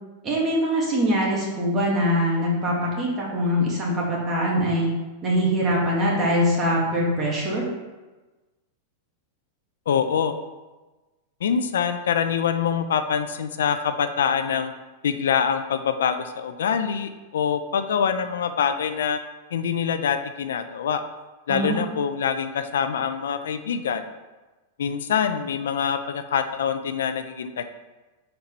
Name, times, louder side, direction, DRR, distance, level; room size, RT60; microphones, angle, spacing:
voice 1, 0.2-4.9 5.2-7.6 21.5-21.8, equal, 25° right, -4 dB, 1.9 m, -23 dB
voice 2, 9.9-10.4 11.4-14.7 15.0-19.2 19.5-21.0 21.5-24.0 24.8-27.6, left 7 dB, 85° left, 9 dB, 0.4 m, -25 dB
4.4 x 4.1 x 5.3 m, 1.2 s
supercardioid pair, 135°, 0 cm